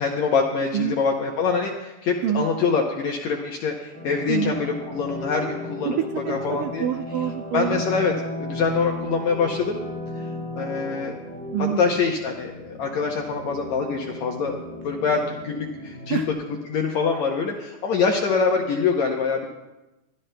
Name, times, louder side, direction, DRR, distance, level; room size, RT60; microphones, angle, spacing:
voice 1, 0.0-6.9 7.5-9.8 10.2-10.3 10.6-11.1 11.8-14.6 14.8-19.5, left 5 dB, 75° left, 1 dB, 1.6 m, -25 dB
sound 1, 3.9-16.3, left 2 dB, 25° left, 1.1 m, -35 dB
voice 2, 6.3-7.8 11.5-11.8 16.1-16.2, right 10 dB, 85° right, 6 dB, 1.9 m, -26 dB
23.0 x 12.0 x 2.2 m, 1.0 s
omnidirectional pair, 4.3 m